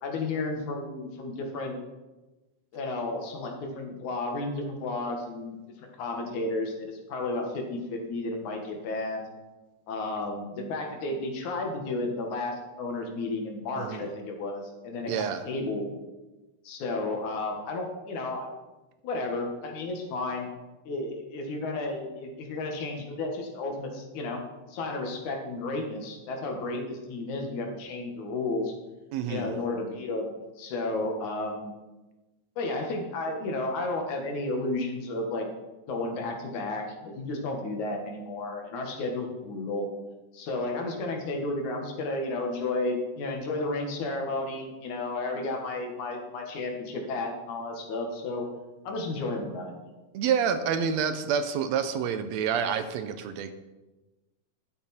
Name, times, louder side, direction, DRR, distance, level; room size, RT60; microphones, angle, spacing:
voice 1, 0.0-1.8 2.7-9.3 9.9-16.0 16.6-18.5 19.0-20.5 20.9-24.4 24.7-28.7 29.3-31.7 32.6-35.5 35.9-39.9 40.3-48.5 48.8-49.9, left 2 dB, 75° left, 2 dB, 3.0 m, -32 dB
voice 2, 13.8-14.1 15.1-15.5 29.1-29.5 50.1-53.5, right 7 dB, 75° right, 9 dB, 1.7 m, -28 dB
12.0 x 8.2 x 4.3 m, 1.1 s
omnidirectional pair, 3.5 m